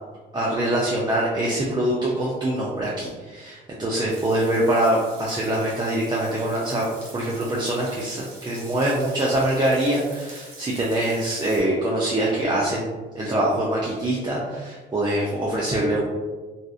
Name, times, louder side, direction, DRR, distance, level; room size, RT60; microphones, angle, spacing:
voice 1, 0.3-6.9 7.1-16.0, right 1 dB, 20° right, -5 dB, 0.5 m, -24 dB
Frying (food), 4.1-11.6, right 2 dB, 90° right, 1.0 m, -45 dB
2.6 x 2.4 x 2.3 m, 1.3 s
cardioid pair, 90°, 20 cm